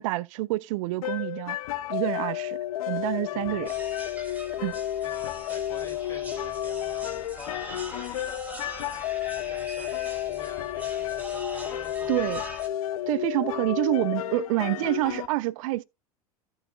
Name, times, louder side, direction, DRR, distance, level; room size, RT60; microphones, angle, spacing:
voice 1, 0.0-1.6 1.9-2.6 2.9-3.7 4.6-4.8 12.1-12.4 13.1-15.8, right 18 dB, 60° right, 0.5 m, -27 dB
sound 1, 1.0-15.3, left 12 dB, 65° left, 0.7 m, -32 dB
voice 2, 3.3-3.8 5.0-12.4, left 5 dB, 20° left, 3.0 m, -48 dB
sound 2, 3.7-12.7, right 1 dB, 10° right, 1.9 m, -42 dB
13.5 x 7.2 x 2.3 m
figure-of-eight pair, 80°, 19 cm